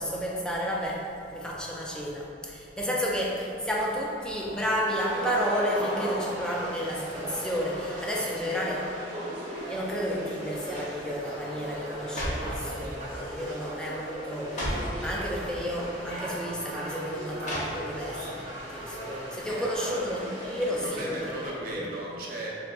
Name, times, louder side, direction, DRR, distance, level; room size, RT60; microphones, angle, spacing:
voice 1, 0.0-9.0 9.6-21.1 21.7-21.8, equal, 5° left, -3 dB, 0.4 m, -31 dB
Skateboard, 2.7-3.0 3.4-8.0, equal, 85° left, 0.9 m, -40 dB
Conversation / Crowd, 4.9-21.5, equal, 25° right, 1.0 m, -38 dB
sound 1, 10.7-11.0 11.8-12.6 13.4-13.7 13.9-14.0 14.4-15.0 15.9-16.0 17.4-18.1 18.5-18.6, equal, 45° left, 0.8 m, -34 dB
voice 2, 19.5-20.2 20.5-22.6, right 1 dB, 55° right, -4 dB, 0.6 m, -37 dB
3.6 x 3.6 x 2.3 m, 2.5 s
head